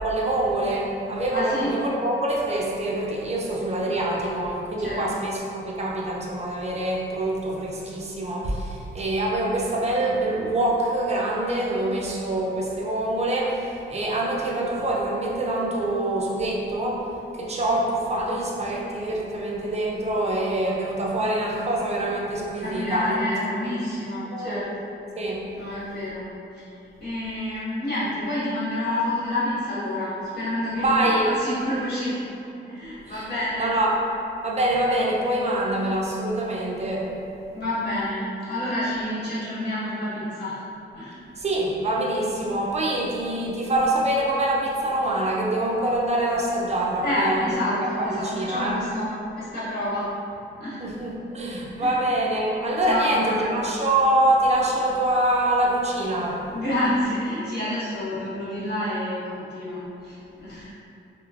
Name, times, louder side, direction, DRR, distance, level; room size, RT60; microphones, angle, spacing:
voice 1, 0.0-23.2 23.6-23.7 24.3-24.7 25.2-25.4 30.8-31.5 33.1-33.3 33.6-34.0 34.4-37.1 41.4-48.8 50.8-56.6, right 1 dB, 30° right, -3 dB, 0.5 m, -25 dB
voice 2, 1.3-1.8 4.8-5.0 22.6-24.7 25.6-26.3 26.5-26.7 27.0-32.2 32.5-33.7 37.5-40.6 41.0-41.2 47.0-50.1 50.6-50.8 51.8-52.0 52.9-53.5 56.5-60.7, left 1 dB, 50° left, -11 dB, 1.4 m, -28 dB
3.0 x 2.1 x 2.4 m, 2.7 s
cardioid pair, 80°, 21 cm